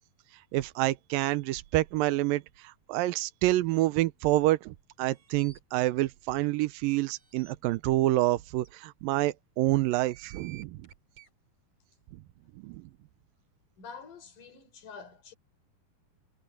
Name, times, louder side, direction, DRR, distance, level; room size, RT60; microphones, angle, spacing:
voice 1, 0.5-10.8 12.6-12.8, right 17 dB, 85° right, 2.4 m, -28 dB
sound 1, 5.1-5.6 6.2-6.3 6.6-6.7 7.1-7.5 8.2-8.3 8.6-8.7 9.7-11.3, right 9 dB, 45° right, 7.5 m, -54 dB
voice 2, 13.8-15.3, left 5 dB, 60° left, 6.5 m, -47 dB
omnidirectional pair, 4.1 m